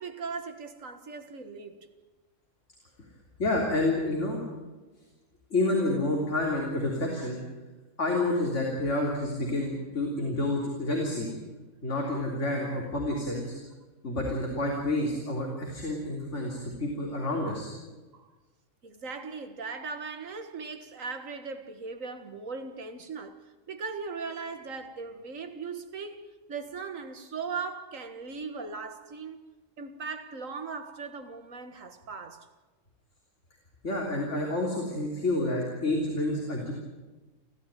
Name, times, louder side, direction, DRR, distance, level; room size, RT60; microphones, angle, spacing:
voice 1, 0.0-1.9 18.1-18.3 18.8-23.4 23.7-26.2 26.5-29.5 29.8-32.5, right 5 dB, 80° right, 2.0 m, -38 dB
voice 2, 3.4-4.4 5.5-7.4 8.0-11.3 11.8-13.5 14.0-17.7 33.8-36.7, left 2 dB, 65° left, 3.8 m, -29 dB
30.0 x 13.5 x 9.1 m
omnidirectional pair, 1.3 m